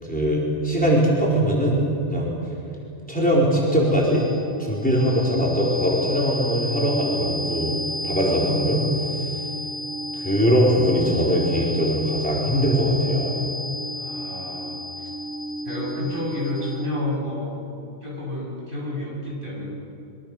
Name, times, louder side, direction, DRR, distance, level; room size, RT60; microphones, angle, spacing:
voice 1, 0.1-2.3 3.1-4.2 4.6-7.8 8.0-8.8 9.2-9.3 10.1-13.4, equal, 5° left, -5 dB, 4.5 m, -21 dB
sound 1, 3.3-17.2, equal, 70° left, 2.3 m, -32 dB
voice 2, 13.9-15.1 15.6-17.5 18.0-19.7, left 1 dB, 45° right, -4 dB, 7.8 m, -30 dB
25.5 x 24.0 x 6.8 m, 2.6 s
omnidirectional pair, 1.2 m